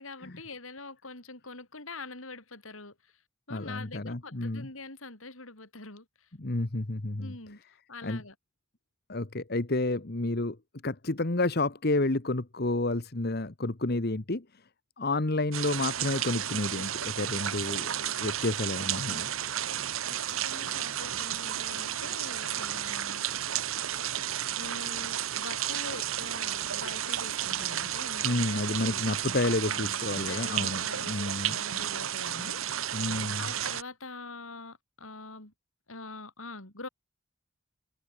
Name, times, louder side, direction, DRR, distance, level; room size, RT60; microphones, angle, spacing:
voice 1, 0.0-2.9 3.5-6.3 7.2-7.6 7.9-8.3 17.8-18.1 19.7-19.8 20.0-23.3 24.5-29.0 29.6-33.1 33.4-35.5 35.9-36.9, left 3 dB, 80° left, 6.4 m, -45 dB
voice 2, 3.5-4.7 6.4-7.3 8.0-8.2 9.1-10.6 10.8-14.6 15.0-19.3 28.2-31.6 32.9-33.5, left 2 dB, 50° left, 1.3 m, -30 dB
sound 1, 15.5-33.8, right 11 dB, 80° right, 1.1 m, -32 dB
head